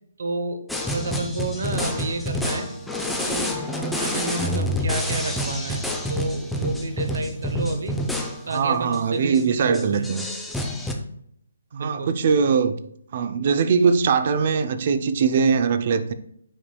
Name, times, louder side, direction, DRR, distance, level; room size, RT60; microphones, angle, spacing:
voice 1, 0.2-2.7 3.2-3.6 3.9-8.0 8.5-10.1 11.7-12.2, right 2 dB, 65° right, 1.0 m, -30 dB
sound 1, 0.7-8.6 8.9-9.0 9.3-9.4 9.7-10.9, left 1 dB, ahead, 0.6 m, -27 dB
voice 2, 8.5-10.3 11.8-12.7 13.1-16.1, right 5 dB, 40° right, 0.6 m, -21 dB
8.9 x 4.9 x 2.3 m
hypercardioid pair, 160°, 0 cm